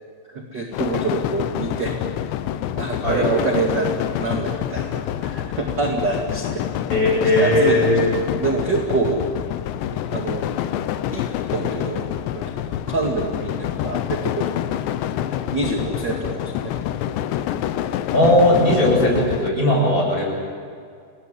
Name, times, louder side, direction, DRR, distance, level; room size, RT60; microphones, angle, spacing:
voice 1, 0.3-2.0 2.7-3.9 4.2-6.7 7.4-9.3 9.9-10.5 11.1-12.0 12.3-14.9 15.2-16.7, right 3 dB, 35° right, 1 dB, 1.8 m, -26 dB
sound 1, 0.7-19.5, left 11 dB, 80° left, 3.0 m, -27 dB
voice 2, 6.9-8.0 18.1-20.3, left 1 dB, 20° left, -1 dB, 7.3 m, -17 dB
28.5 x 19.0 x 9.8 m, 2.3 s
omnidirectional pair, 5.3 m